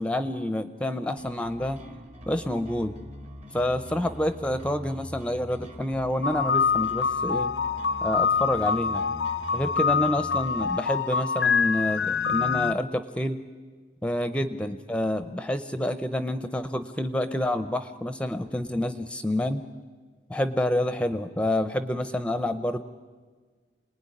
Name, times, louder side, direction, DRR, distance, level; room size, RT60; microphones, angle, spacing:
voice 1, 0.0-1.8 2.2-3.0 3.5-7.5 8.0-9.0 9.5-13.4 14.0-19.6 20.3-22.8, left 1 dB, 5° left, 10 dB, 0.7 m, -28 dB
sound 1, 1.2-10.8, equal, 40° right, 2.2 m, -43 dB
sound 2, 6.2-12.7, left 6 dB, 80° left, 0.7 m, -25 dB
28.5 x 20.0 x 9.9 m, 1.5 s
head